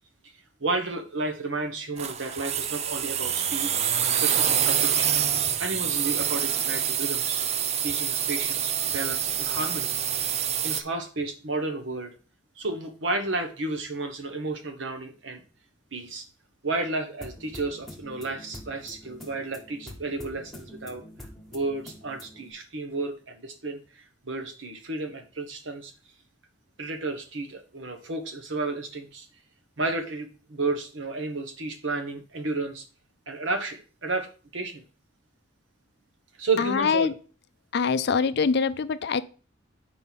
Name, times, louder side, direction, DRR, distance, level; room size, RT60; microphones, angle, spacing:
voice 1, 0.6-3.7 4.2-5.2 5.6-7.4 7.8-9.9 10.3-12.1 12.6-15.4 15.9-16.2 16.6-21.0 21.5-25.9 26.8-29.3 29.8-32.8 33.3-34.3 34.5-34.8 36.4-37.1, right 3 dB, 65° right, 6 dB, 1.2 m, -32 dB
sound 1, 2.0-10.8, right 9 dB, 35° right, 0.4 m, -26 dB
sound 2, 17.2-22.5, left 1 dB, ahead, 1.2 m, -45 dB
voice 2, 36.6-37.1 37.7-39.2, left 5 dB, 55° left, 14 dB, 0.4 m, -24 dB
5.5 x 4.5 x 5.9 m, 0.37 s
head